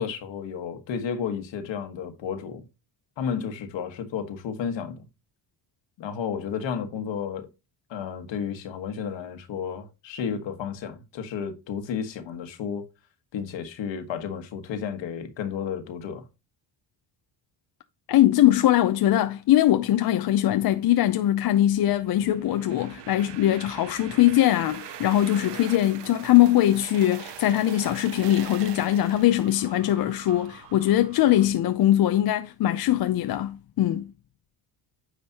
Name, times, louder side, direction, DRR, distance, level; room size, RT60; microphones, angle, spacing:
voice 1, 0.0-2.7 3.2-5.1 6.0-7.5 7.9-12.9 13.3-16.2, left 7 dB, 75° left, 1.5 m, -32 dB
voice 2, 18.1-34.1, left 13 dB, 55° left, 0.6 m, -21 dB
sound 1, 21.8-31.5, right 10 dB, 65° right, 0.9 m, -43 dB
9.6 x 5.1 x 2.8 m
cardioid pair, 110°, 45 cm